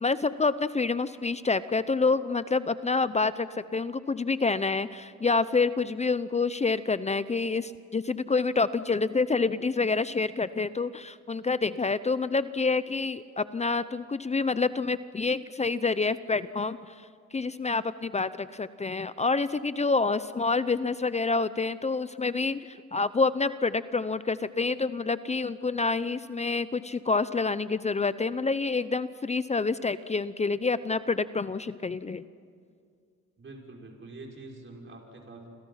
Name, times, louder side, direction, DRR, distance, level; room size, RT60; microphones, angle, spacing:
voice 1, 0.0-16.8 17.3-32.2, left 4 dB, 20° left, 14 dB, 0.7 m, -27 dB
voice 2, 33.4-35.5, right 2 dB, 40° right, 0 dB, 5.9 m, -45 dB
29.0 x 26.5 x 5.8 m, 2.1 s
cardioid pair, 90°, 30 cm